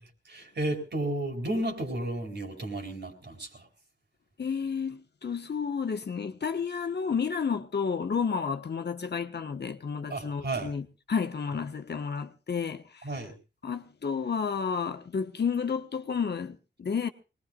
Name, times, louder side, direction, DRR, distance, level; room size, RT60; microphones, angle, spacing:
voice 1, 0.3-3.6 10.1-10.8 13.0-13.3, right 1 dB, 65° right, 4.0 m, -33 dB
voice 2, 4.4-13.1 13.6-17.1, left 6 dB, 60° left, 1.2 m, -31 dB
24.0 x 19.5 x 2.4 m
wide cardioid pair, 90°, 19 cm